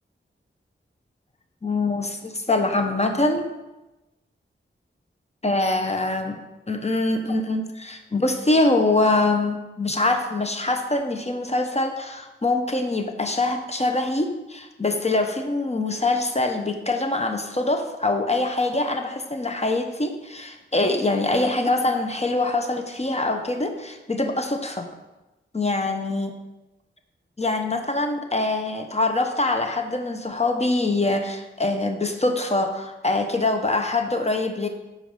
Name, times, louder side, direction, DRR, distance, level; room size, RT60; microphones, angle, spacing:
voice 1, 1.6-3.5 5.4-6.4 6.7-24.9 25.5-26.3 27.4-34.7, left 2 dB, 30° left, 5 dB, 0.7 m, -24 dB
7.8 x 4.4 x 5.4 m, 1.0 s
wide cardioid pair, 80°, 21 cm